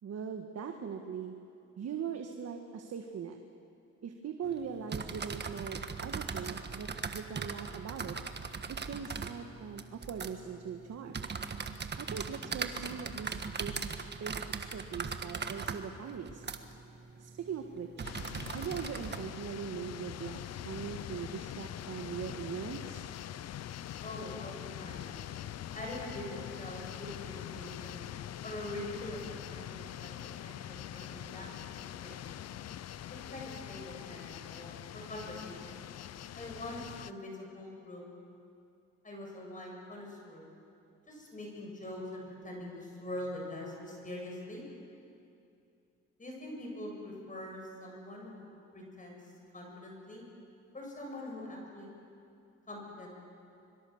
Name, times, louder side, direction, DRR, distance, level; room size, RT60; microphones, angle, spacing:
voice 1, 0.0-1.3 1.8-3.4 4.0-8.2 8.7-11.3 12.0-13.8 14.2-14.3 14.7-16.4 17.2-18.1 18.5-23.0, right 7 dB, 55° right, 4 dB, 1.6 m, -41 dB
sound 1, 4.5-19.2, right 5 dB, 35° right, 1.5 m, -40 dB
sound 2, 18.0-37.1, left 11 dB, 60° left, 0.7 m, -43 dB
voice 2, 24.0-25.2 25.7-28.1 28.4-29.2 29.5-30.1 30.4-32.3 33.3-35.8 36.4-38.0 39.0-40.5 41.1-44.6 46.2-48.4 48.7-49.2 49.5-50.2 50.7-51.9 52.7-53.2, left 1 dB, 25° left, -1 dB, 7.0 m, -43 dB
25.0 x 23.5 x 7.2 m, 2.6 s
cardioid pair, 90°, 30 cm